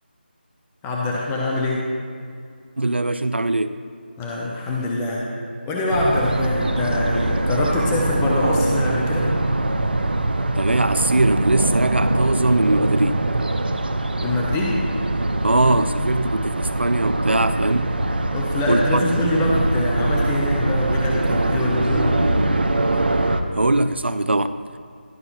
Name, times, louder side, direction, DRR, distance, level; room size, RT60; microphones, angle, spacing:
voice 1, 0.8-1.9 4.2-5.3 5.7-9.3 14.2-14.9 18.3-22.4, left 2 dB, 5° left, -3 dB, 0.4 m, -24 dB
voice 2, 2.8-3.8 10.4-13.3 15.4-17.9 18.7-19.0 23.5-24.8, right 2 dB, 90° right, 10 dB, 0.4 m, -21 dB
sound 1, 5.9-23.4, right 2 dB, 65° right, 0.7 m, -22 dB
12.0 x 5.3 x 5.8 m, 2.3 s
figure-of-eight pair, 165°, 6 cm